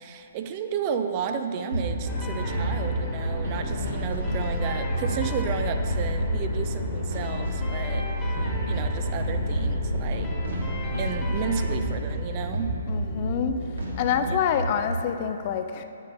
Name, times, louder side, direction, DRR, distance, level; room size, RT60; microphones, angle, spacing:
voice 1, 0.0-10.3 11.0-12.7 14.2-14.4, right 7 dB, 35° right, 7 dB, 0.5 m, -33 dB
sound 1, 1.7-15.0, right 1 dB, 75° right, 1.4 m, -30 dB
sound 2, 2.1-11.8, left 3 dB, 20° left, 1.4 m, -32 dB
voice 2, 12.9-13.6 14.0-15.8, left 8 dB, 40° left, 8 dB, 0.4 m, -26 dB
9.7 x 9.0 x 2.6 m, 2.6 s
figure-of-eight pair, 130°, 0 cm